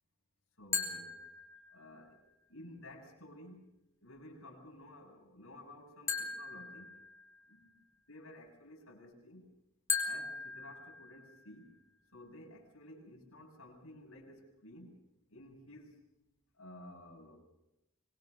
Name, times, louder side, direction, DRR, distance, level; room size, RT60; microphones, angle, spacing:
voice 1, 0.6-1.2 1.7-2.2 2.5-3.7 4.0-7.0 7.5-7.7 8.1-9.5 10.0-11.7 12.1-14.9 15.3-16.0 16.5-17.4, left 1 dB, 60° left, 0 dB, 7.4 m, -53 dB
sound 1, 0.7-2.0 6.1-7.6 9.9-11.6, left 5 dB, 15° left, 4.2 m, -39 dB
25.5 x 22.0 x 6.7 m, 0.90 s
head